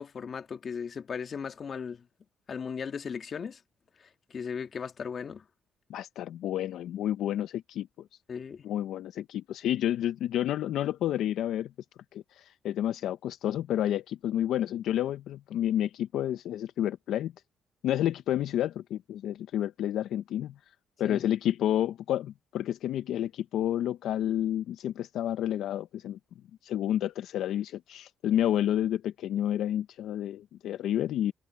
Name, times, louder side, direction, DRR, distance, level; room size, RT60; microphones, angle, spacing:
voice 1, 0.0-2.0 2.5-3.6 4.0-5.4 8.3-8.6 21.0-21.2, left 6 dB, 50° left, 1.7 m, -37 dB
voice 2, 5.9-8.1 8.6-11.7 12.1-17.3 17.8-20.5 21.0-26.2 26.6-31.3, left 11 dB, 80° left, 0.6 m, -30 dB
cardioid pair, 90°, 0 cm